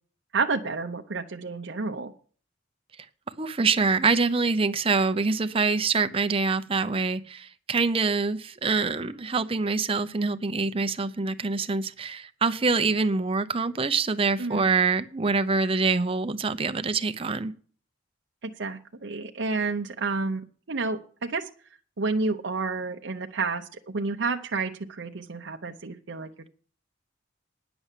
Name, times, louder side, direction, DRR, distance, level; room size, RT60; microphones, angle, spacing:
voice 1, 0.3-2.1 14.4-14.7 18.4-21.5 22.0-26.5, right 3 dB, 60° right, 3 dB, 0.7 m, -30 dB
voice 2, 3.4-17.5, right 4 dB, 30° right, 10 dB, 0.7 m, -25 dB
10.0 x 7.0 x 8.2 m, 0.43 s
head